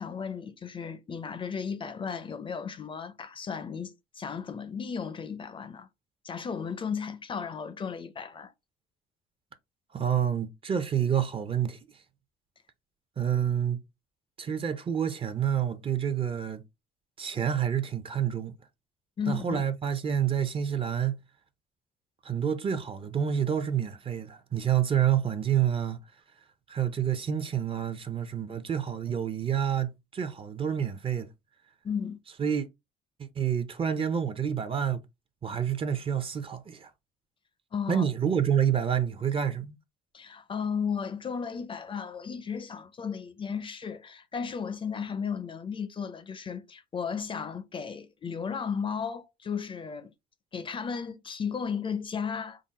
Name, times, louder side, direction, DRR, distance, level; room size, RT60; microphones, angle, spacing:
voice 1, 0.0-5.9 6.2-8.5 19.2-19.6 31.8-32.2 37.7-38.0 40.1-50.1 50.5-52.6, left 6 dB, 30° left, 0.5 m, -34 dB
voice 2, 9.9-11.8 13.2-13.8 14.4-16.6 17.2-18.5 19.3-21.2 22.2-26.0 26.7-31.3 32.4-32.7 33.2-35.0 35.4-36.9 37.9-39.8, right 9 dB, 35° right, 0.6 m, -28 dB
3.8 x 2.0 x 4.0 m
cardioid pair, 110°, 17 cm